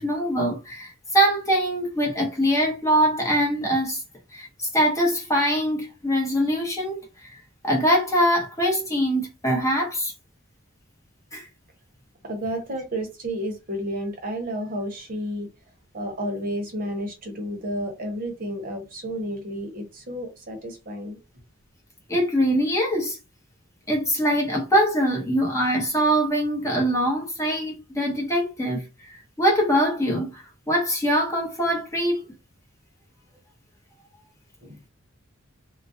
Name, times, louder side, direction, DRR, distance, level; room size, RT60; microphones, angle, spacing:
voice 1, 0.0-4.0 4.3-10.1 11.3-11.5 22.1-23.2 23.9-28.8 29.4-32.2, equal, 15° left, 0.8 m, -23 dB
voice 2, 12.2-15.5 15.9-21.2 34.6-34.8, equal, 45° right, 0.8 m, -31 dB
2.3 x 2.1 x 2.5 m
head